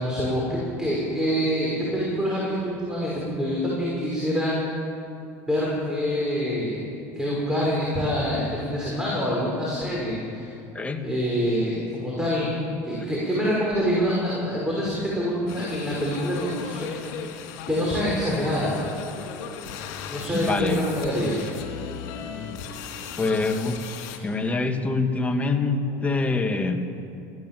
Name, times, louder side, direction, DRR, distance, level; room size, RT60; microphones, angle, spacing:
voice 1, 0.0-4.6 5.5-6.9 7.1-10.5 11.0-12.5 12.9-17.0 17.7-18.8 20.1-21.4, equal, 5° right, -5 dB, 6.1 m, -26 dB
voice 2, 10.7-11.1 20.3-20.8 21.7-21.8 23.2-23.9 24.2-26.8, left 3 dB, 15° left, 4 dB, 2.0 m, -25 dB
sound 1, 15.5-24.2, left 7 dB, 75° left, 3.3 m, -37 dB
22.5 x 16.0 x 7.8 m, 2.6 s
supercardioid pair, 120°, 9 cm